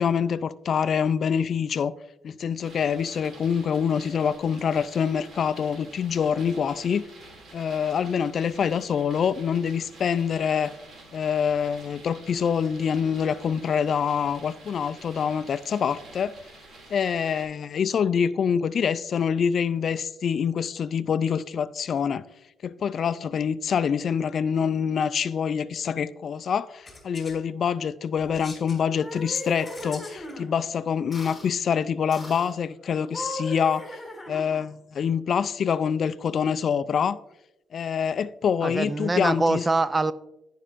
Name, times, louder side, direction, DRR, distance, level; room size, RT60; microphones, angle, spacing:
voice 1, 0.0-1.9 2.2-7.0 7.5-10.7 11.1-16.3 16.9-22.2 22.6-34.0 34.3-37.2 37.7-39.6, left 7 dB, 55° left, 0.3 m, -25 dB
sound 1, 2.6-17.4, right 2 dB, 55° right, 2.5 m, -49 dB
sound 2, 26.8-27.4 28.1-28.8 29.3-30.3, left 3 dB, 25° left, 2.6 m, -44 dB
sound 3, 28.8-30.5 31.1-31.5 32.1-32.5 33.0-34.7, left 1 dB, 10° left, 3.0 m, -37 dB
voice 2, 38.6-40.1, right 2 dB, 20° right, 0.4 m, -24 dB
15.5 x 5.4 x 2.5 m
cardioid pair, 90°, 0 cm